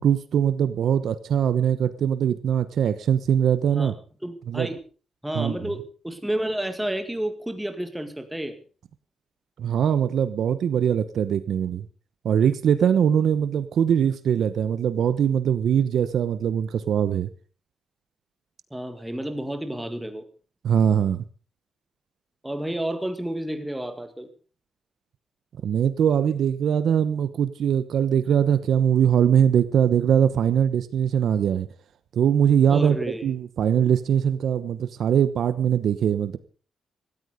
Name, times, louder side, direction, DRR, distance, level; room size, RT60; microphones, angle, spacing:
voice 1, 0.0-3.9 4.5-4.7 5.3-5.7 9.6-11.9 12.2-17.3 20.6-21.2 25.6-31.7 32.1-36.4, right 8 dB, 65° right, 14 dB, 1.0 m, -22 dB
voice 2, 4.2-4.8 5.2-8.5 18.7-20.2 22.4-24.3 32.7-33.2, right 1 dB, 5° right, 8 dB, 1.9 m, -30 dB
17.0 x 13.5 x 5.1 m, 0.38 s
wide cardioid pair, 175°, 0 cm